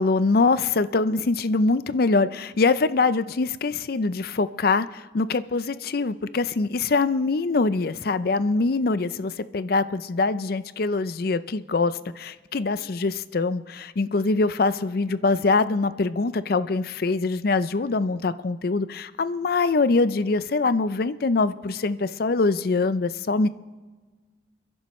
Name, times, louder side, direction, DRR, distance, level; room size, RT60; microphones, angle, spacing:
voice 1, 0.0-23.5, left 3 dB, 55° left, 14 dB, 0.5 m, -23 dB
29.0 x 11.0 x 3.2 m, 1.4 s
head